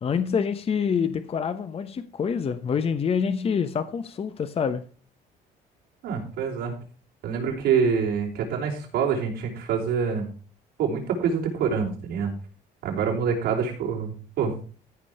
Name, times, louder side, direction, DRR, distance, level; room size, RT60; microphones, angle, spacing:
voice 1, 0.0-4.8, left 6 dB, 35° left, 11 dB, 0.9 m, -26 dB
voice 2, 6.0-6.7 7.2-10.3 10.8-12.3 12.8-14.5, right 6 dB, 85° right, -2 dB, 5.0 m, -26 dB
14.5 x 5.3 x 6.4 m, 0.40 s
cardioid pair, 110°, 17 cm